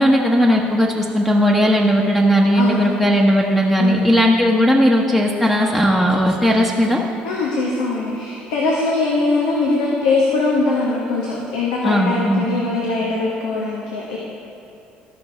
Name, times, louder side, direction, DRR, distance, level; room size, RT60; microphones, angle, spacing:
voice 1, 0.0-7.0 11.8-12.4, equal, 5° left, -2 dB, 1.0 m, -16 dB
voice 2, 2.5-3.0 3.8-4.2 7.2-14.2, left 3 dB, 85° left, -3 dB, 1.2 m, -21 dB
13.5 x 5.3 x 4.4 m, 2.7 s
supercardioid pair, 70°, 4 cm